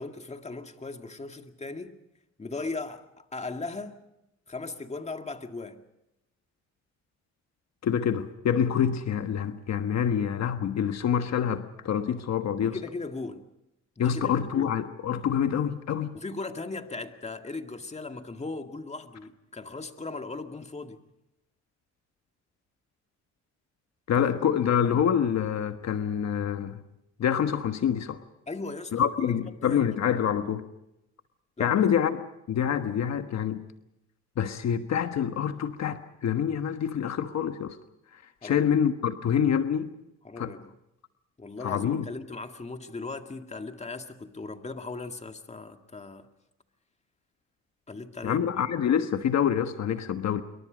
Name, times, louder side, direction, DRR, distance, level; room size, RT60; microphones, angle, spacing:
voice 1, 0.0-2.0 2.4-4.0 4.5-5.8 12.6-13.5 14.0-14.8 16.1-21.0 24.2-24.5 28.5-29.8 31.6-31.8 38.4-38.7 40.2-40.7 41.4-46.3 47.9-48.6, left 3 dB, 20° left, 2.1 m, -38 dB
voice 2, 7.8-12.8 14.0-16.2 24.1-26.8 27.2-28.2 28.9-30.6 31.6-32.2 32.5-33.6 34.4-37.8 38.1-39.9 40.4-40.5 41.6-42.1 48.2-50.4, left 8 dB, 60° left, 1.4 m, -26 dB
27.5 x 24.5 x 5.2 m
cardioid pair, 90°, 30 cm